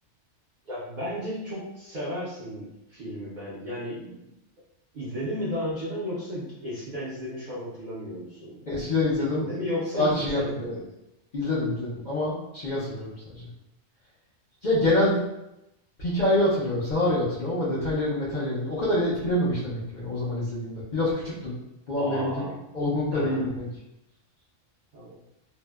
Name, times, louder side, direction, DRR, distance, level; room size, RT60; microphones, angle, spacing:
voice 1, 0.7-4.3 4.9-8.7 9.2-10.9 21.9-22.6 23.1-23.5 24.9-25.1, equal, 50° right, -8 dB, 0.6 m, -34 dB
voice 2, 8.7-9.5 9.9-10.8 11.3-13.5 14.6-15.2 16.0-21.6 21.9-22.4 22.7-23.7, left 1 dB, 50° left, -8 dB, 0.6 m, -26 dB
2.7 x 2.0 x 2.2 m, 0.88 s
omnidirectional pair, 1.3 m